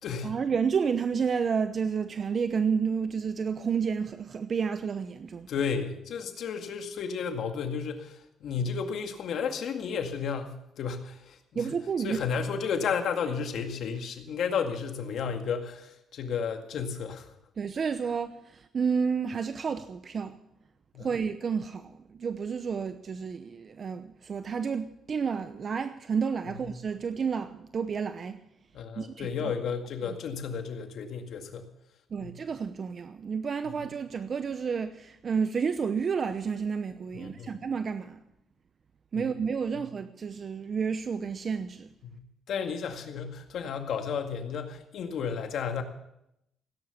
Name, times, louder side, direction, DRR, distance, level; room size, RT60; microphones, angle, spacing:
voice 1, 0.2-5.5 11.5-12.2 17.6-20.4 21.0-28.4 29.0-29.5 30.0-30.2 32.1-38.2 39.1-41.9, right 6 dB, 45° right, 0.8 m, -30 dB
voice 2, 5.5-11.7 12.0-17.3 20.9-21.1 28.7-31.6 32.2-32.3 37.1-37.6 39.1-39.2 42.5-45.8, left 6 dB, 70° left, 2.1 m, -32 dB
17.0 x 10.5 x 6.9 m
cardioid pair, 90°, 0 cm